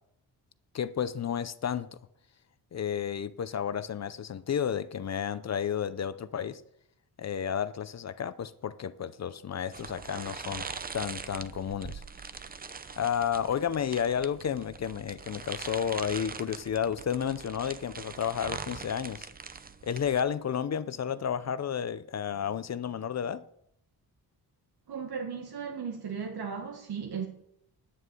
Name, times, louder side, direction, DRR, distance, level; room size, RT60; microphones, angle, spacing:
voice 1, 0.7-1.9 2.7-6.6 7.2-12.0 13.0-19.3 19.8-23.4, left 8 dB, 45° left, 0.5 m, -32 dB
sound 1, 9.7-20.2, right 5 dB, 25° right, 0.6 m, -42 dB
voice 2, 24.9-27.3, right 6 dB, 70° right, 1.7 m, -36 dB
9.7 x 8.1 x 8.3 m
wide cardioid pair, 150°, 39 cm